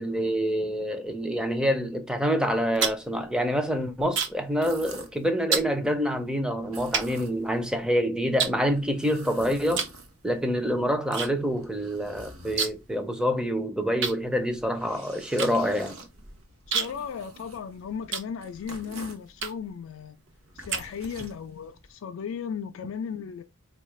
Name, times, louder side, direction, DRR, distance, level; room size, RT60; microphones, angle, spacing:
voice 1, 0.0-9.9 10.2-15.9, equal, 5° right, 0.4 m, -26 dB
sound 1, 2.5-4.5 4.8-5.1 5.5-5.7 6.4-6.5 6.9-7.9 8.4-9.2 9.7-10.0 10.3-11.3 11.6-11.7 11.9-12.9 13.2-13.3 14.0-18.8 19.4-19.8 20.3-21.3, right 6 dB, 55° right, 0.6 m, -31 dB
sound 2, 4.4-5.3 6.6-7.7 8.7-10.5 11.2-13.0 14.4-19.3 20.3-21.9, right 2 dB, 85° right, 0.9 m, -47 dB
voice 2, 16.7-20.2 20.6-23.4, left 6 dB, 70° left, 0.3 m, -36 dB
4.2 x 2.4 x 3.0 m
head